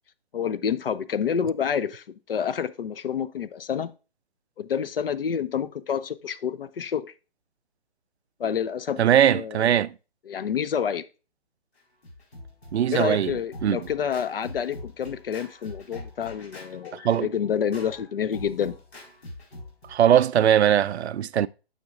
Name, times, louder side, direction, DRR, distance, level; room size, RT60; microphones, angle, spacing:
voice 1, 0.3-3.9 4.6-7.1 8.4-9.0 9.3-9.7 10.3-11.1 12.9-18.8, left 8 dB, 60° left, 0.6 m, -28 dB
voice 2, 9.0-9.9 12.7-13.3 13.6-13.8 17.0-17.3 19.9-21.5, right 10 dB, 90° right, 0.5 m, -20 dB
Scratching (performance technique), 11.8-20.2, left 2 dB, 75° left, 4.2 m, -44 dB
9.2 x 6.5 x 2.4 m
hypercardioid pair, 165°, 32 cm